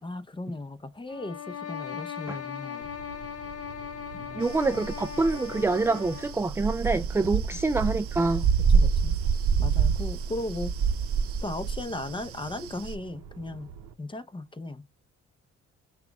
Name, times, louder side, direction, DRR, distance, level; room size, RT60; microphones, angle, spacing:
voice 1, 0.0-2.9 4.1-4.5 7.5-7.6 8.7-9.1 9.6-10.7 11.4-13.7 14.0-14.8, left 2 dB, 15° left, 0.8 m, -36 dB
sound 1, 1.1-6.5, left 8 dB, 50° left, 1.0 m, -39 dB
sound 2, 2.8-13.9, right 8 dB, 85° right, 0.8 m, -47 dB
voice 2, 4.4-8.5, right 3 dB, 10° right, 0.3 m, -26 dB
sound 3, 4.5-12.9, right 6 dB, 50° right, 0.6 m, -27 dB
5.8 x 2.4 x 3.5 m
cardioid pair, 90°, 30 cm